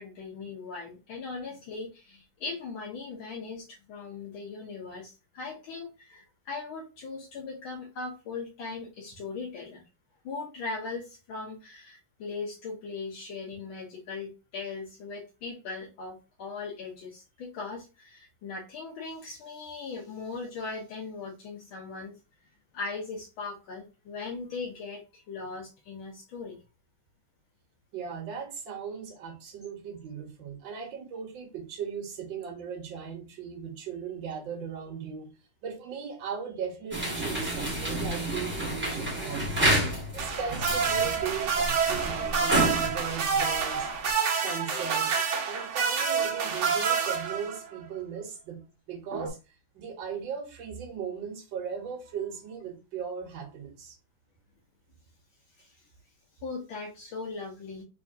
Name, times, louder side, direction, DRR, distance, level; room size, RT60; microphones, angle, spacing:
voice 1, 0.0-9.8 10.2-22.1 22.7-26.6 55.6-55.7 56.4-57.8, left 4 dB, 75° left, 1.6 m, -39 dB
voice 2, 27.9-35.3 35.6-39.8 40.1-43.9 44.4-49.4 49.7-54.0, right 7 dB, 65° right, 1.6 m, -38 dB
sound 1, 36.9-44.1, right 1 dB, 10° right, 0.8 m, -30 dB
sound 2, 40.2-47.8 49.1-49.3, right 6 dB, 85° right, 0.6 m, -28 dB
3.6 x 3.6 x 2.4 m
omnidirectional pair, 2.3 m